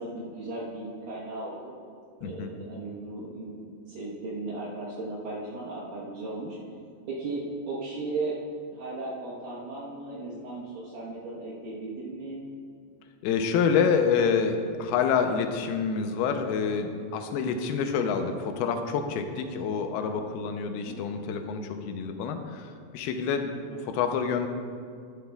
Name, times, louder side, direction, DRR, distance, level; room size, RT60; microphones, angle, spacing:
voice 1, 0.0-1.7 2.2-6.6 7.1-8.4 8.7-12.4 20.7-21.0 23.7-23.8, right 2 dB, 70° right, -8 dB, 2.7 m, -36 dB
voice 2, 2.2-2.5 13.2-23.5 23.8-24.5, left 6 dB, 85° left, 6 dB, 2.6 m, -27 dB
12.5 x 11.5 x 2.3 m, 2.2 s
omnidirectional pair, 4.5 m